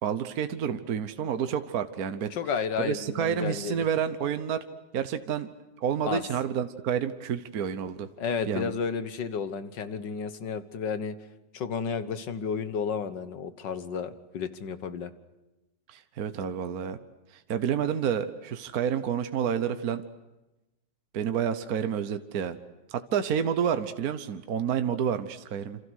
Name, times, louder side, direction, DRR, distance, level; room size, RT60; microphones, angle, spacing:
voice 1, 0.0-2.3 2.8-4.7 4.9-5.5 5.8-8.1 8.5-8.7 15.9-17.0 17.3-20.0 21.1-22.6 22.9-25.8, right 8 dB, 60° right, 10 dB, 1.5 m, -29 dB
voice 2, 2.3-3.9 6.1-6.2 8.2-11.1 11.5-15.1, left 6 dB, 85° left, 12 dB, 2.0 m, -32 dB
28.0 x 27.0 x 6.4 m, 1.0 s
omnidirectional pair, 1.9 m